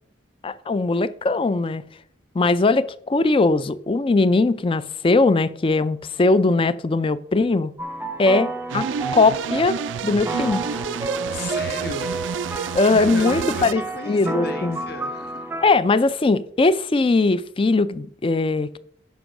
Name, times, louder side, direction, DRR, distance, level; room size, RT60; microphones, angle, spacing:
voice 1, 0.4-1.8 2.3-7.7 8.2-10.6 12.7-13.8 14.1-14.8 15.6-18.8, left 3 dB, 30° left, 0.4 m, -20 dB
sound 1, 7.8-15.7, right 2 dB, 10° right, 0.6 m, -31 dB
sound 2, 8.7-13.7, right 7 dB, 80° right, 0.4 m, -29 dB
voice 2, 11.3-12.1 13.0-15.4, left 2 dB, 55° left, 1.3 m, -34 dB
10.5 x 4.6 x 6.0 m
head